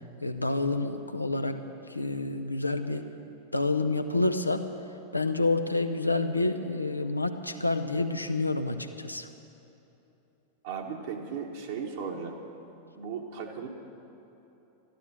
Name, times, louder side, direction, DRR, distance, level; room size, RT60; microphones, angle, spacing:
voice 1, 0.2-1.6 1.9-3.0 3.5-4.7 5.1-9.3, left 2 dB, 85° left, 8 dB, 0.7 m, -28 dB
voice 2, 10.6-12.4 12.9-13.7, right 6 dB, 55° right, -1 dB, 1.4 m, -36 dB
13.5 x 11.5 x 7.5 m, 3.0 s
figure-of-eight pair, 90°, 0 cm